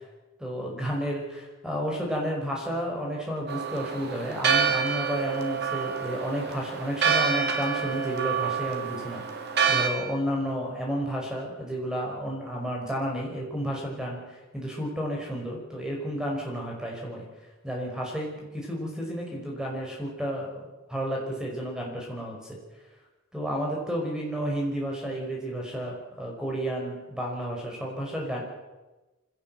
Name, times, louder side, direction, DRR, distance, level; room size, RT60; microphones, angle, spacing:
voice 1, 0.4-17.3 17.6-20.6 20.9-22.6 23.3-28.4, equal, 5° right, -1 dB, 5.4 m, -32 dB
Church bell, 3.5-9.9, right 6 dB, 50° right, 2.3 m, -27 dB
24.5 x 17.0 x 7.8 m, 1.1 s
head